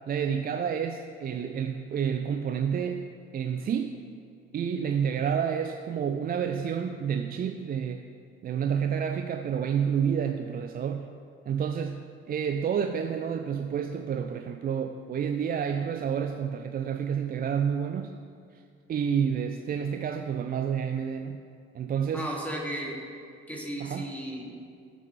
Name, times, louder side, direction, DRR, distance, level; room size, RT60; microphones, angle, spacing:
voice 1, 0.1-4.0 4.5-8.0 8.4-11.1 11.5-12.0 12.3-18.2 18.5-18.6 18.9-21.4 21.7-22.3 23.8-24.1, right 7 dB, 25° right, 6 dB, 0.5 m, -29 dB
voice 2, 22.1-23.0 23.5-24.6, right 1 dB, 5° left, -3 dB, 2.6 m, -34 dB
18.5 x 7.3 x 3.3 m, 2.3 s
figure-of-eight pair, 55°, 34 cm